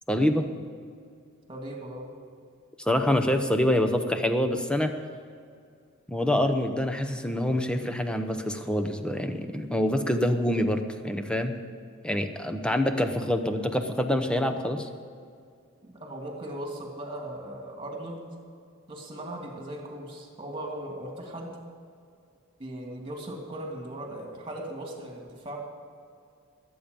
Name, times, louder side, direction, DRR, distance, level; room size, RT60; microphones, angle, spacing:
voice 1, 0.1-0.5 2.9-4.9 6.1-11.6 12.0-14.9, left 1 dB, 5° left, 6 dB, 0.9 m, -26 dB
voice 2, 1.5-2.1 15.8-18.3 18.9-21.6 22.6-25.6, right 1 dB, 25° right, 0 dB, 2.7 m, -38 dB
21.5 x 8.7 x 5.3 m, 2.3 s
head